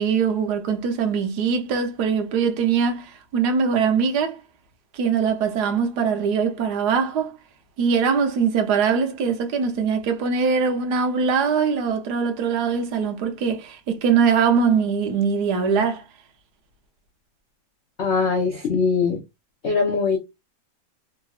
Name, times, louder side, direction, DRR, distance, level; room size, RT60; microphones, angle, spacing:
voice 1, 0.0-4.4 4.9-7.4 7.8-16.0, right 6 dB, 65° right, 1.1 m, -22 dB
voice 2, 18.0-19.2 19.6-20.2, left 5 dB, 80° left, 0.6 m, -21 dB
3.3 x 3.0 x 2.3 m
omnidirectional pair, 2.2 m